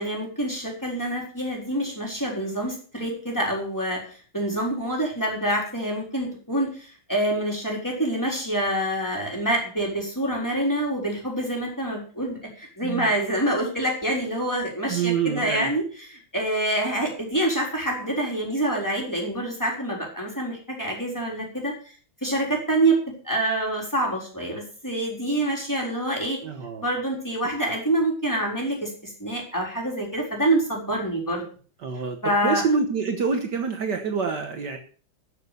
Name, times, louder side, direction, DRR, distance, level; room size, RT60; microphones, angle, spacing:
voice 1, 0.0-4.0 4.3-21.7 22.2-23.0 23.2-26.4 26.8-31.5 32.2-32.6, right 1 dB, 10° left, -1 dB, 4.2 m, -26 dB
voice 2, 14.9-15.7 26.4-26.9 31.8-32.2 32.4-34.8, right 5 dB, 60° right, 5 dB, 1.8 m, -26 dB
13.5 x 6.7 x 6.8 m, 0.42 s
omnidirectional pair, 2.2 m